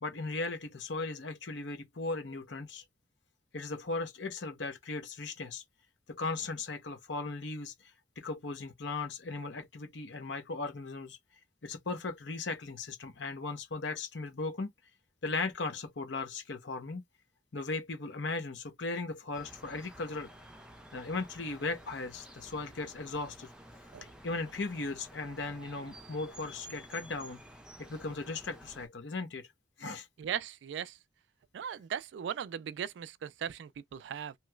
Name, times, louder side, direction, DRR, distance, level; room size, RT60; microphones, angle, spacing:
voice 1, 0.0-2.8 3.5-5.6 6.1-7.7 8.2-11.2 11.6-14.7 15.2-17.0 17.5-20.3 20.9-23.5 24.2-27.4 27.8-29.5 29.8-30.1, left 3 dB, 75° left, 0.8 m, -37 dB
sound 1, 19.3-28.9, right 1 dB, 5° right, 0.6 m, -52 dB
voice 2, 30.2-31.0 31.5-34.3, right 8 dB, 70° right, 0.3 m, -38 dB
3.0 x 2.9 x 2.2 m
head